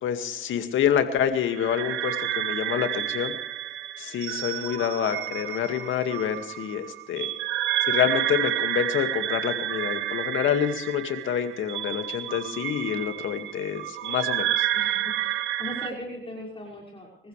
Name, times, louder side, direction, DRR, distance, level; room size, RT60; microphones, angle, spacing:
voice 1, 0.0-3.3 4.0-7.3 7.8-14.7, left 9 dB, 80° left, 7 dB, 2.1 m, -27 dB
sound 1, 1.4-15.9, right 13 dB, 85° right, 1.1 m, -30 dB
voice 2, 14.7-17.3, left 1 dB, 25° left, -4 dB, 5.8 m, -39 dB
25.5 x 15.0 x 3.3 m, 0.85 s
cardioid pair, 90°, 20 cm